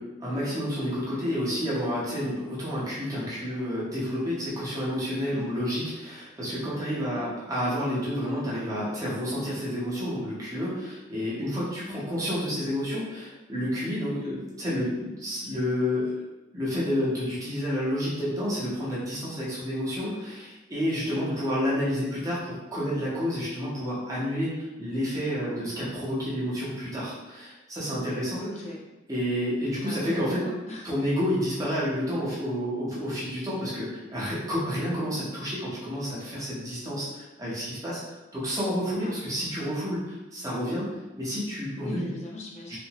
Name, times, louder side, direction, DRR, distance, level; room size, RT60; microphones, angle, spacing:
voice 1, 0.0-16.2 16.5-28.4 29.1-30.5 30.8-38.0 38.3-40.9 41.2-42.1 42.7-42.8, equal, 20° right, -7 dB, 0.8 m, -30 dB
voice 2, 21.0-21.4 25.4-25.7 28.4-28.8 29.8-30.8 38.9-39.2 41.8-42.8, left 1 dB, 35° left, -2 dB, 0.5 m, -39 dB
2.7 x 2.6 x 2.9 m, 1.1 s
head